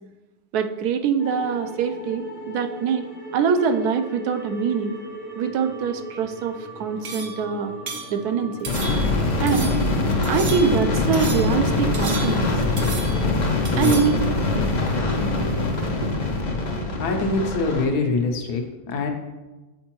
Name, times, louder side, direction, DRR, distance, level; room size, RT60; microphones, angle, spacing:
voice 1, 0.5-3.1 3.3-5.0 5.4-7.7 8.1-8.7 9.4-9.8 10.3-12.6 13.8-14.2 14.5-14.7 16.0-16.1, right 6 dB, 85° right, 7 dB, 1.1 m, -24 dB
sound 1, 1.2-15.8, left 1 dB, 65° left, 1.5 m, -37 dB
sound 2, 7.0-7.4 7.9-8.1 8.6-9.2 9.5-9.9 10.2-10.8 11.1-11.6 11.9-12.5 12.8-13.3 13.6-14.2, right 4 dB, 50° right, 0.8 m, -34 dB
sound 3, 8.7-17.8, left 2 dB, 40° left, 0.6 m, -23 dB
voice 2, 17.0-19.1, left 3 dB, 85° left, 3 dB, 1.4 m, -24 dB
8.4 x 4.5 x 2.9 m, 1.1 s
omnidirectional pair, 1.6 m